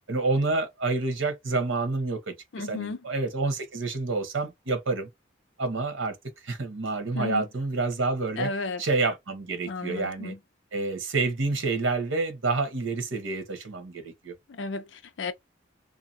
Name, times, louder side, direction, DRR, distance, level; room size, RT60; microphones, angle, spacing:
voice 1, 0.1-5.1 5.6-6.1 6.4-8.5 8.8-10.3 10.7-14.3, right 3 dB, 90° right, 1.0 m, -28 dB
voice 2, 2.5-3.0 7.1-7.4 8.4-8.8 9.7-10.4 14.5-15.3, left 3 dB, 70° left, 0.5 m, -33 dB
2.8 x 2.2 x 2.6 m
head